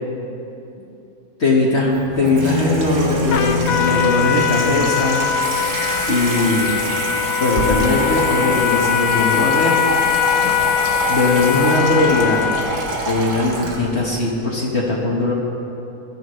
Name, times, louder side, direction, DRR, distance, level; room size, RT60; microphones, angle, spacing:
voice 1, 1.4-1.9 2.2-5.2 6.1-6.7 7.4-9.8 11.1-12.4 13.1-15.3, left 2 dB, 45° left, -3 dB, 1.7 m, -19 dB
Water tap faucet / Sink (filling or washing), 1.8-14.1, right 2 dB, 85° right, 2.2 m, -26 dB
sound 1, 2.1-4.4, left 2 dB, 20° right, 3.4 m, -24 dB
Trumpet, 3.3-12.9, left 10 dB, 70° left, 1.0 m, -21 dB
21.0 x 13.0 x 3.2 m, 2.9 s
omnidirectional pair, 1.6 m